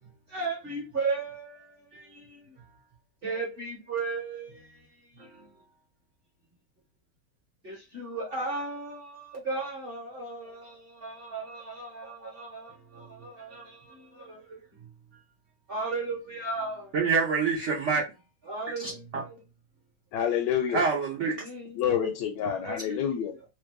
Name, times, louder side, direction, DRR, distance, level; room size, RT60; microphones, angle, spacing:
voice 1, 0.0-2.8 3.2-5.6 7.6-15.2 15.7-16.9 18.4-19.4 21.3-21.9 22.6-23.0, right 3 dB, 40° right, 0.9 m, -36 dB
voice 2, 16.9-18.0 18.8-19.2 20.7-21.4, right 5 dB, 80° right, 0.6 m, -26 dB
voice 3, 20.1-20.8 21.7-23.3, left 9 dB, 75° left, 1.1 m, -28 dB
3.2 x 2.2 x 3.4 m
omnidirectional pair, 2.2 m